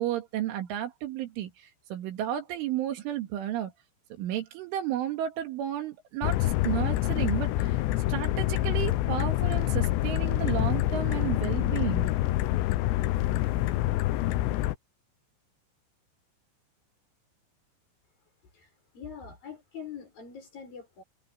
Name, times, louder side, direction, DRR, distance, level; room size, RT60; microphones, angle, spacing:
voice 1, 0.0-3.7 4.2-7.8 8.1-12.1, right 12 dB, 75° right, 4.3 m, -32 dB
sound 1, 6.2-14.7, left 15 dB, 80° left, 2.7 m, -26 dB
voice 2, 18.5-21.0, left 7 dB, 45° left, 7.9 m, -44 dB
omnidirectional pair, 5.8 m